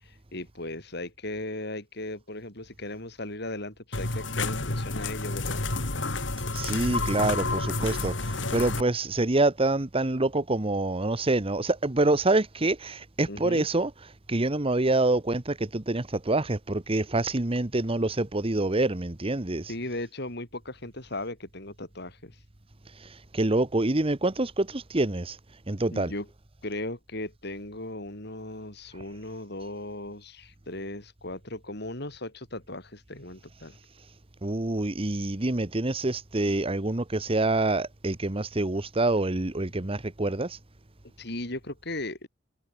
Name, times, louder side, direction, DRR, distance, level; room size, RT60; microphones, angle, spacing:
voice 1, 0.0-5.6 13.3-13.7 19.7-22.4 25.9-26.3 26.6-33.8 41.2-42.3, left 2 dB, 60° left, 7.8 m, -37 dB
sound 1, 3.9-8.8, left 3 dB, 80° left, 2.9 m, -30 dB
voice 2, 6.5-13.9 14.3-19.7 23.3-25.4 25.7-26.1 34.4-40.6, right 2 dB, 30° right, 1.2 m, -26 dB
head